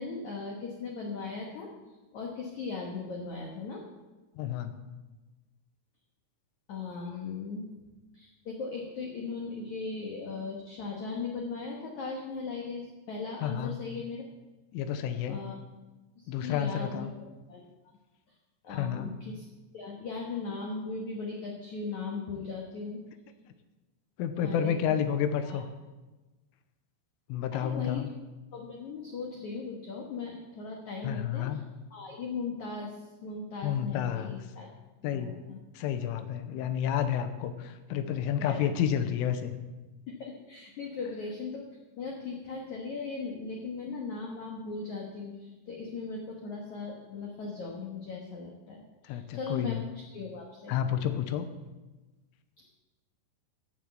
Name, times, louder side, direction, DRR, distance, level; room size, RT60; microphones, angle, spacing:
voice 1, 0.0-1.7 2.1-3.8 6.7-7.7 8.1-14.2 15.3-15.6 16.2-17.1 17.5-17.6 18.6-19.5 19.7-23.0 24.4-24.8 25.4-25.6 27.5-28.1 28.5-31.6 31.9-34.7 35.0-35.6 38.4-38.6 40.2-41.6 42.0-50.7, left 4 dB, 70° left, -1 dB, 1.8 m, -38 dB
voice 2, 4.4-4.8 13.4-13.8 14.7-15.4 16.3-17.1 18.7-19.1 24.2-25.7 27.3-28.1 31.0-31.6 33.6-34.4 35.0-35.4 35.8-39.6 49.1-49.8 50.7-51.5, left 9 dB, 90° left, 9 dB, 3.4 m, -30 dB
13.0 x 7.4 x 8.0 m, 1.2 s
omnidirectional pair, 5.7 m